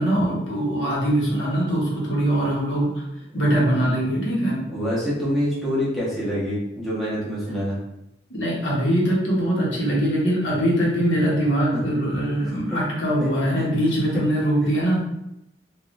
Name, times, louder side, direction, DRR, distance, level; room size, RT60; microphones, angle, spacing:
voice 1, 0.0-3.0 3.3-4.6 8.3-15.0, right 1 dB, 85° left, -5 dB, 1.1 m, -22 dB
voice 2, 4.7-7.8 11.7-11.8 12.4-12.8 13.2-13.3 13.6-13.7 14.1-14.2, equal, ahead, -9 dB, 1.0 m, -26 dB
3.5 x 2.4 x 2.5 m, 0.86 s
head